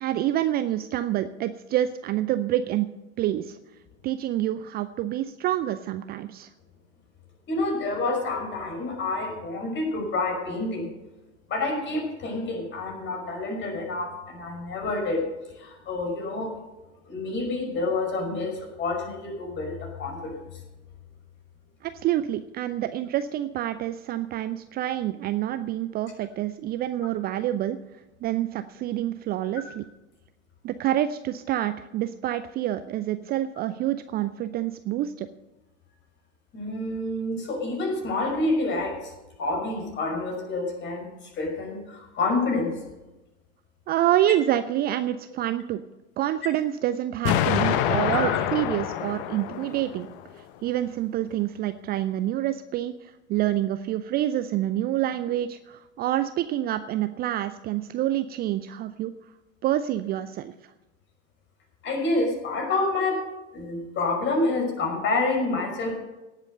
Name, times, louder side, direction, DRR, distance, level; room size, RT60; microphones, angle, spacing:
voice 1, 0.0-2.9 3.2-3.6 4.0-6.5 21.8-27.8 28.2-29.8 30.6-35.3 43.9-45.8 46.2-50.1 50.4-59.1 59.6-60.7, right 13 dB, 25° right, 12 dB, 0.5 m, -27 dB
voice 2, 7.5-10.9 11.5-15.2 15.5-16.5 17.1-20.4 36.5-39.1 39.4-41.1 41.3-42.8 48.1-48.3 61.8-66.0, left 2 dB, 30° left, 2 dB, 5.8 m, -28 dB
Explosion, 47.3-50.2, left 10 dB, 50° left, 1.0 m, -26 dB
18.0 x 8.2 x 6.6 m, 1.0 s
figure-of-eight pair, 80°, 36 cm